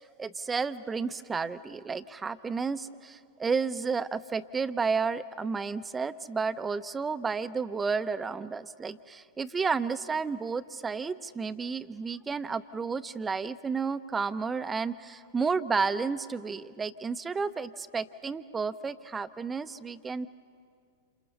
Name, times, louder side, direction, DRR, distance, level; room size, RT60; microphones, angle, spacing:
voice 1, 0.2-20.3, right 5 dB, 15° right, 13 dB, 0.8 m, -31 dB
28.5 x 28.5 x 5.5 m, 2.2 s
figure-of-eight pair, 95°, 0 cm